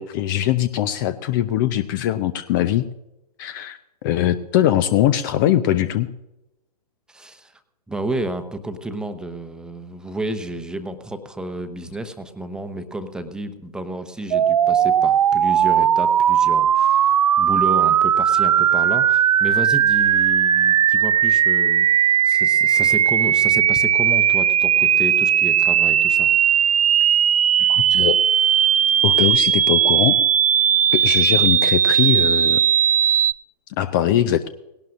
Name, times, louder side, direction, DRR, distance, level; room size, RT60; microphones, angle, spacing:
voice 1, 0.0-2.9 3.4-6.1 27.6-28.2 29.0-30.2 30.9-32.6 33.8-34.5, left 12 dB, 30° left, 13 dB, 0.6 m, -21 dB
voice 2, 7.1-7.5 7.9-21.9 22.2-26.3, right 1 dB, 5° right, 8 dB, 0.9 m, -31 dB
sound 1, 14.3-33.3, right 9 dB, 60° right, 0.5 m, -17 dB
19.0 x 17.5 x 2.6 m, 0.91 s
figure-of-eight pair, 115°, 21 cm